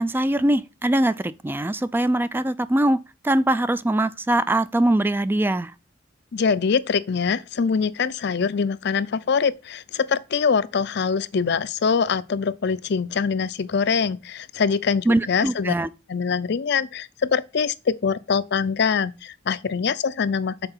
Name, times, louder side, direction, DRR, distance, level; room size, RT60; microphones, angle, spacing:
voice 1, 0.0-3.0 3.2-5.7 15.1-15.9, right 1 dB, 10° right, 0.3 m, -22 dB
voice 2, 6.3-15.7 16.1-20.7, left 5 dB, 60° left, 0.5 m, -24 dB
6.8 x 4.6 x 5.6 m
head